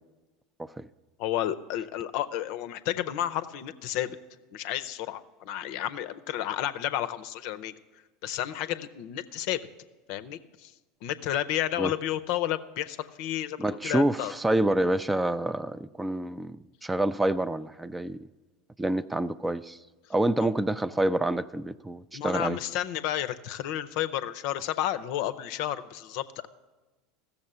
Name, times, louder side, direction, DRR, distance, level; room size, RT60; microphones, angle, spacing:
voice 1, 1.2-4.2 4.5-7.7 8.2-9.6 10.1-10.7 11.0-14.3 22.1-26.5, left 12 dB, 60° left, 12 dB, 0.5 m, -31 dB
voice 2, 13.6-18.2 18.8-19.8 20.1-22.6, right 1 dB, 10° right, 15 dB, 0.4 m, -27 dB
14.5 x 7.0 x 6.7 m, 1.2 s
hypercardioid pair, 80°, 0 cm